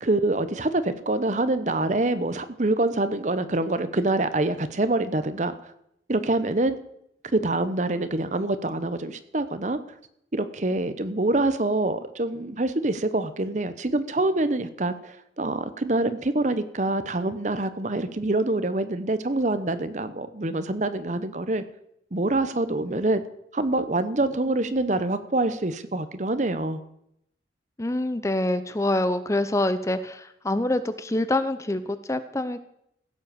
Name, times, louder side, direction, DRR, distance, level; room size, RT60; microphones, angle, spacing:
voice 1, 0.0-5.5 6.1-6.7 7.3-9.8 10.3-21.6 22.1-23.2 23.5-26.8, right 2 dB, 40° right, 11 dB, 0.9 m, -25 dB
voice 2, 27.8-32.6, left 1 dB, 15° left, 12 dB, 0.6 m, -26 dB
16.0 x 7.6 x 7.0 m, 0.75 s
head